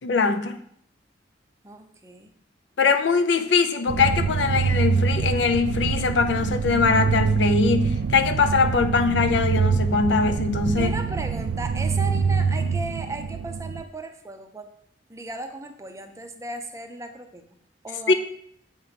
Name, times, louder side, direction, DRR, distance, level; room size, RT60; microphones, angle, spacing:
voice 1, 0.0-0.6 2.8-10.9 18.1-18.2, left 4 dB, 75° left, 9 dB, 0.5 m, -22 dB
voice 2, 1.6-2.3 10.8-14.7 15.1-17.4 17.8-18.1, right 2 dB, 15° right, 5 dB, 0.5 m, -36 dB
sound 1, 3.9-13.8, right 5 dB, 90° right, 0.3 m, -25 dB
8.0 x 2.9 x 5.0 m, 0.69 s
head